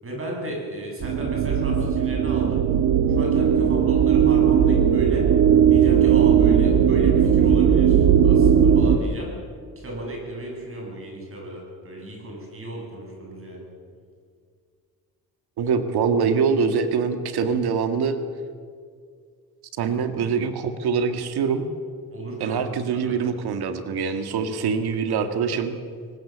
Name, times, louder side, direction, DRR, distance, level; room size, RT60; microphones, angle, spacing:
voice 1, 0.0-2.6 3.1-5.2 5.7-9.3 9.8-13.7 22.1-22.7 22.9-23.1, right 1 dB, 35° right, -1 dB, 7.8 m, -35 dB
sound 1, 1.0-9.0, right 8 dB, 65° right, 1.8 m, -18 dB
voice 2, 15.6-18.2 19.8-21.6 22.4-25.8, right 6 dB, 80° right, 8 dB, 1.9 m, -24 dB
23.5 x 19.5 x 7.5 m, 2.1 s
cardioid pair, 160°, 38 cm